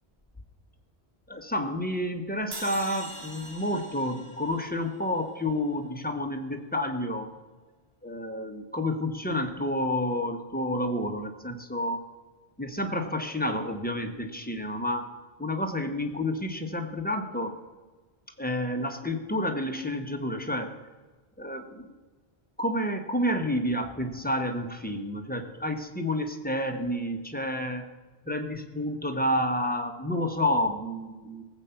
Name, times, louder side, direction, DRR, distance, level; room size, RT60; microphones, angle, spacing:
voice 1, 1.3-7.3 8.0-12.0 12.6-15.1 15.4-17.6 18.4-20.8 21.4-21.9 22.6-27.9 28.3-31.5, left 1 dB, 10° left, 5 dB, 1.1 m, -30 dB
sound 1, 2.5-5.7, right 2 dB, 35° right, 1.4 m, -43 dB
18.5 x 8.1 x 5.8 m, 1.3 s
omnidirectional pair, 1.1 m